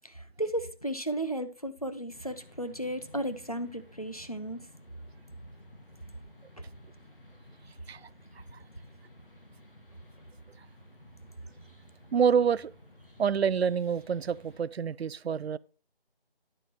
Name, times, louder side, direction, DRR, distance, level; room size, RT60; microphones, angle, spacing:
voice 1, 0.0-4.7 6.6-6.7, right 1 dB, 40° left, 0.5 m, -34 dB
sound 1, 2.1-14.6, equal, 60° left, 1.9 m, -54 dB
voice 2, 12.1-12.7 13.2-15.6, right 7 dB, 90° right, 0.5 m, -27 dB
9.9 x 8.9 x 3.0 m
figure-of-eight pair, 180°, 31 cm